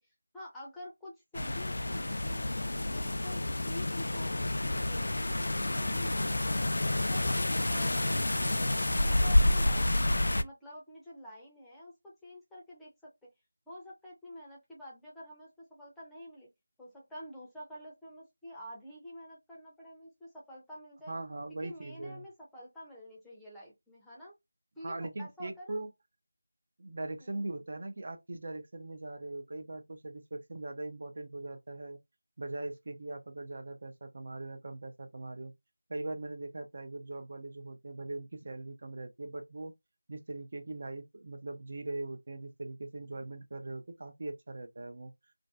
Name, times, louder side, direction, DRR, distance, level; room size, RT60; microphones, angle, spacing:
voice 1, 0.0-6.7 7.1-9.9 10.4-13.1 13.7-16.5 16.8-21.1 21.6-24.3 24.8-25.8 27.2-27.5, equal, 5° left, 0.6 m, -48 dB
sound 1, 1.3-10.4, left 1 dB, 60° left, 0.3 m, -29 dB
voice 2, 21.1-22.2 24.8-25.9 26.8-32.0 32.4-35.5 35.9-39.7 40.1-45.1, right 2 dB, 45° right, 0.5 m, -40 dB
2.5 x 2.2 x 2.3 m
figure-of-eight pair, 170°, 0 cm